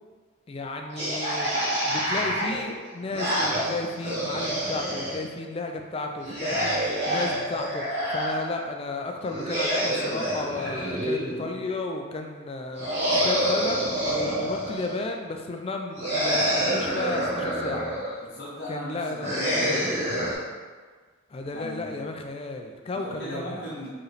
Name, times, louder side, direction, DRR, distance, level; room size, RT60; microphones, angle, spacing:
voice 1, 0.5-17.9 18.7-19.5 21.3-23.7, left 3 dB, 25° left, 3 dB, 0.3 m, -33 dB
sound 1, 0.9-5.2 6.2-8.4 9.3-11.6 12.8-15.0 16.0-18.1 19.2-20.3, equal, 35° right, 1.2 m, -27 dB
voice 2, 18.2-20.0 21.5-22.0 22.9-23.9, equal, 50° left, -9 dB, 0.8 m, -37 dB
4.6 x 3.1 x 3.2 m, 1.5 s
head